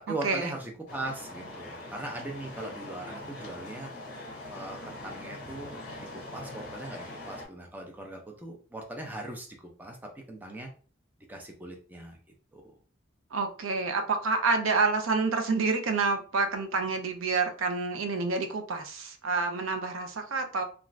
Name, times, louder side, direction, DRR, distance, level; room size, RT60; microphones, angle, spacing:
voice 1, 0.1-3.9 4.5-5.8 6.3-10.0 10.3-10.7 11.3-12.2 12.5-12.7, right 1 dB, 10° right, 1 dB, 0.5 m, -39 dB
sound 1, 0.9-7.4, left 1 dB, 45° left, 1.0 m, -42 dB
voice 2, 13.3-20.6, right 4 dB, 85° right, 6 dB, 0.5 m, -28 dB
2.4 x 2.4 x 3.1 m, 0.40 s
head